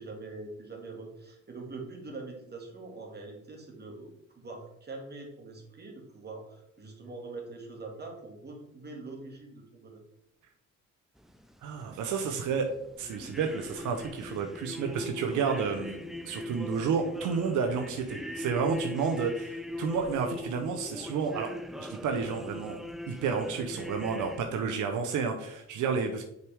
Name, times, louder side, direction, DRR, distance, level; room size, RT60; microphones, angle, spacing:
voice 1, 0.0-10.0 25.9-26.0, right 3 dB, 35° right, 1 dB, 1.9 m, -43 dB
sound 1, 11.2-24.4, left 1 dB, ahead, 0.4 m, -41 dB
voice 2, 11.6-12.7 13.0-16.0 16.2-21.5 21.8-22.8 23.1-26.2, right 5 dB, 80° right, 5 dB, 0.8 m, -31 dB
6.6 x 4.7 x 3.4 m, 0.81 s
cardioid pair, 90°, 30 cm